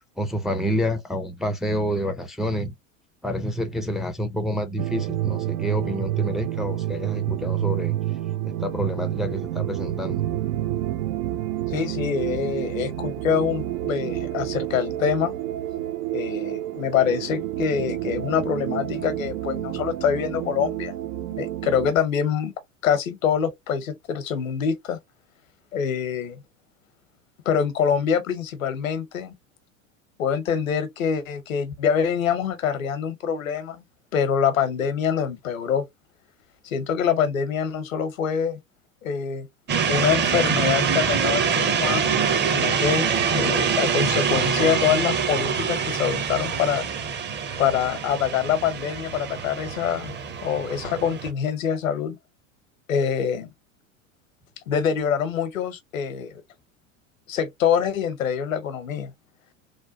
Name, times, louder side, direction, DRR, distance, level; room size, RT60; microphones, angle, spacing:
voice 1, 0.2-2.7 3.2-8.0 8.5-10.2, equal, ahead, 0.5 m, -28 dB
sound 1, 4.8-21.9, right 13 dB, 70° right, 0.6 m, -29 dB
voice 2, 11.7-15.3 16.1-21.0 21.4-22.5 22.8-25.0 25.7-26.4 27.4-29.4 30.2-33.8 34.1-35.8 36.6-38.6 39.0-39.5 39.9-42.2 42.5-46.9 47.6-52.2 52.9-53.5 54.7-56.4 57.3-59.1, left 7 dB, 85° left, 0.9 m, -25 dB
sound 2, 39.7-51.3, right 6 dB, 25° right, 0.8 m, -25 dB
3.2 x 2.2 x 2.6 m
hypercardioid pair, 90°, 39 cm